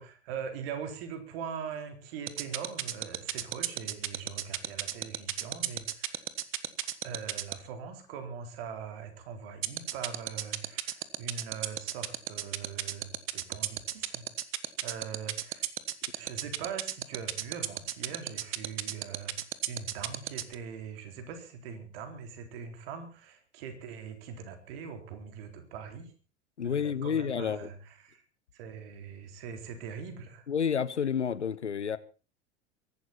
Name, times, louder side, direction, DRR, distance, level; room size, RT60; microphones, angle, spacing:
voice 1, 0.0-6.3 7.0-14.2 14.8-15.7 16.1-26.1 26.6-28.2 28.5-30.5, right 6 dB, 55° right, 4.1 m, -42 dB
sound 1, 2.3-7.5 9.6-20.5, right 14 dB, 35° right, 1.5 m, -32 dB
voice 2, 26.6-27.7 30.5-32.0, left 7 dB, 80° left, 1.1 m, -30 dB
23.5 x 12.0 x 4.3 m
figure-of-eight pair, 80°, 34 cm